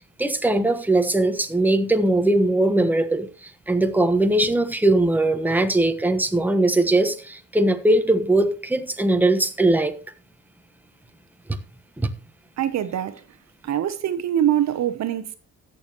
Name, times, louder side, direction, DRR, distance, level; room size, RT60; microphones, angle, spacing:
voice 1, 0.2-3.3 3.7-9.9 12.0-12.1, right 2 dB, 5° right, 1.2 m, -20 dB
voice 2, 12.6-13.2 13.6-15.4, right 11 dB, 65° right, 0.9 m, -24 dB
16.5 x 7.0 x 3.0 m
cardioid pair, 90°, 30 cm